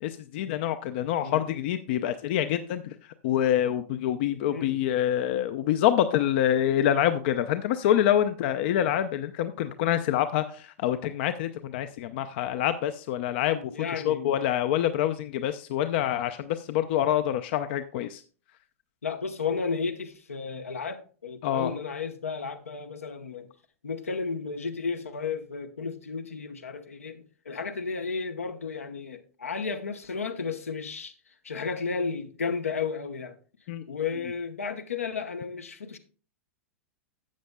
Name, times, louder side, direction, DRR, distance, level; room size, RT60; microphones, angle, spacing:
voice 1, 0.0-18.2 21.4-21.7 33.7-34.0, left 11 dB, 50° left, 0.5 m, -26 dB
voice 2, 13.5-14.4 19.0-23.5 23.8-31.1 31.4-33.4 33.9-36.0, left 5 dB, 80° left, 0.9 m, -33 dB
12.5 x 7.9 x 2.2 m
figure-of-eight pair, 100°, 8 cm